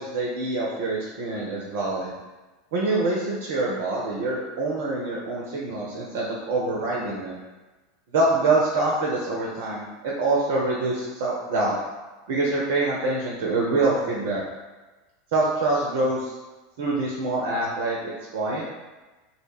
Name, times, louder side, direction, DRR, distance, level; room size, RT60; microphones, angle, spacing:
voice 1, 0.0-2.1 2.7-7.4 8.1-11.8 12.3-14.4 15.3-16.3 16.8-18.7, right 2 dB, 55° right, -3 dB, 0.4 m, -25 dB
2.1 x 2.1 x 3.2 m, 1.2 s
figure-of-eight pair, 80°, 0 cm